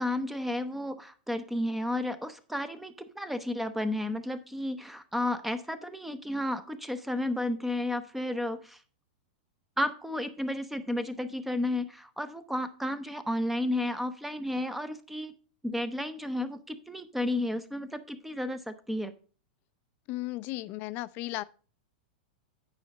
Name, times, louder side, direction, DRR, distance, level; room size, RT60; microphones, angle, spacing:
voice 1, 0.0-8.8 9.8-15.3 15.6-19.1, left 1 dB, 5° right, 0.7 m, -32 dB
voice 2, 20.1-21.4, left 18 dB, 40° left, 0.5 m, -35 dB
9.5 x 4.9 x 5.2 m
hypercardioid pair, 135°, 5 cm